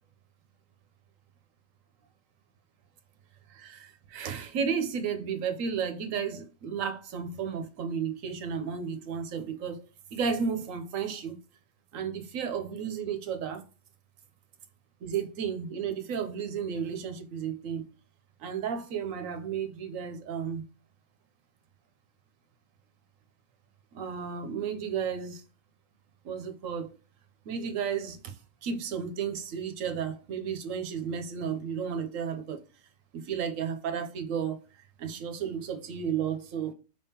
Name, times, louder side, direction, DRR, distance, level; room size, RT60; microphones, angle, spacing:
voice 1, 3.5-9.8 10.1-11.4 11.9-13.6 15.0-17.8 18.4-20.6 23.9-25.4 26.2-26.9 27.5-32.6 33.1-36.7, right 7 dB, 80° right, 1.1 m, -33 dB
4.9 x 3.6 x 2.8 m
omnidirectional pair, 1.4 m